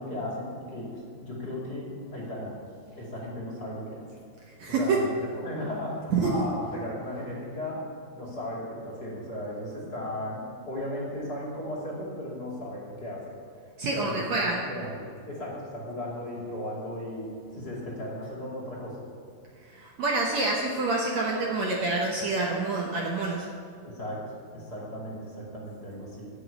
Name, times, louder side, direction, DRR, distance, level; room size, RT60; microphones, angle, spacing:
voice 1, 0.0-2.5 3.0-4.1 4.7-13.2 13.9-14.3 14.7-19.0 23.8-26.3, left 1 dB, 30° left, -5 dB, 2.5 m, -36 dB
voice 2, 4.6-5.0 6.1-6.3 13.8-14.6 19.7-23.5, right 3 dB, 65° right, -2 dB, 2.0 m, -27 dB
10.0 x 8.4 x 8.4 m, 2.3 s
omnidirectional pair, 4.1 m